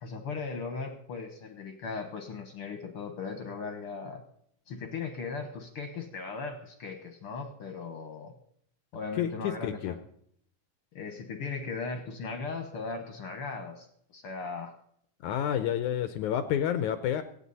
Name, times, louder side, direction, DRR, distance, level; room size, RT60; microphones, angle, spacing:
voice 1, 0.0-4.2 4.7-8.3 8.9-10.0 10.9-13.9 14.1-14.7, left 4 dB, 55° left, 7 dB, 1.6 m, -38 dB
voice 2, 9.2-9.9 15.2-17.2, left 10 dB, 75° left, 11 dB, 1.9 m, -29 dB
24.5 x 9.2 x 4.1 m, 0.68 s
omnidirectional pair, 4.0 m